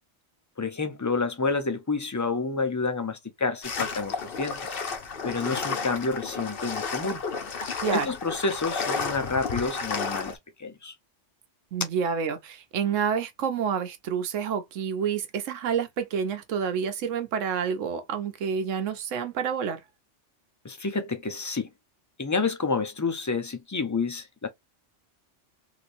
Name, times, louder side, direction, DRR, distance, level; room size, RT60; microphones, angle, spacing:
voice 1, 0.6-4.8 5.2-7.2 7.9-10.9 20.6-21.7 22.2-24.5, left 4 dB, 25° left, 0.4 m, -29 dB
sound 1, 3.6-10.3, left 5 dB, 55° left, 0.9 m, -32 dB
voice 2, 11.7-19.8, right 7 dB, 85° right, 1.1 m, -28 dB
3.2 x 2.8 x 2.6 m
omnidirectional pair, 1.3 m